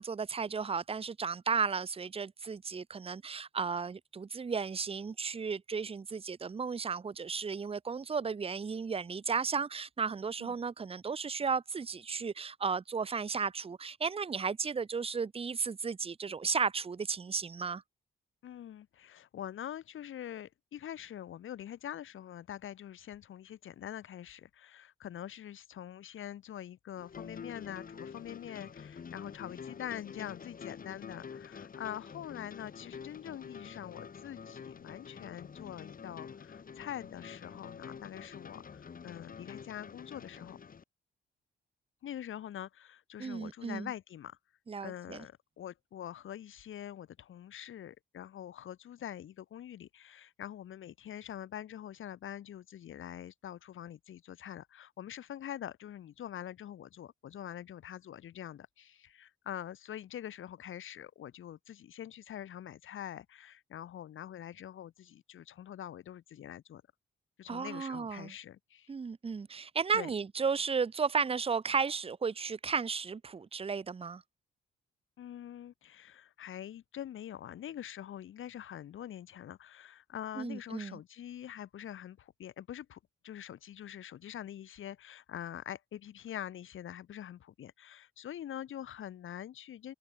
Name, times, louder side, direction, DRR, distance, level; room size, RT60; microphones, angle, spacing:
voice 1, 0.0-17.8 43.2-43.9 44.7-45.2 67.5-68.3 68.9-74.2 80.4-81.0, right 5 dB, 30° right, 0.7 m, -34 dB
voice 2, 18.4-40.6 42.0-44.4 44.8-66.8 67.4-68.9 69.9-70.1 75.2-89.9, left 10 dB, 75° left, 3.4 m, -44 dB
sound 1, 27.0-40.8, left 6 dB, 45° left, 1.2 m, -47 dB
supercardioid pair, 60°, 21 cm